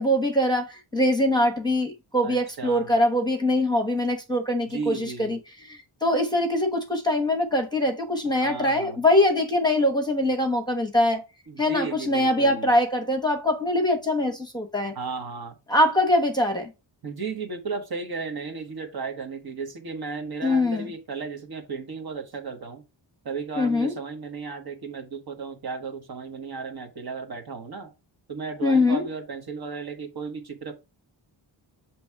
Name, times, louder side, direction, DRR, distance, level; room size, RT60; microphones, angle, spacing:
voice 1, 0.0-5.4 5.6-11.2 11.6-14.9 15.7-16.7 20.4-20.9 23.6-23.9 28.6-29.1, left 1 dB, 10° left, 1.0 m, -23 dB
voice 2, 2.2-2.9 4.7-5.4 8.4-9.0 11.5-12.7 14.9-15.6 17.0-22.8 23.2-27.9 28.3-30.7, right 4 dB, 50° right, 1.3 m, -34 dB
7.0 x 3.2 x 4.6 m
wide cardioid pair, 120°, 46 cm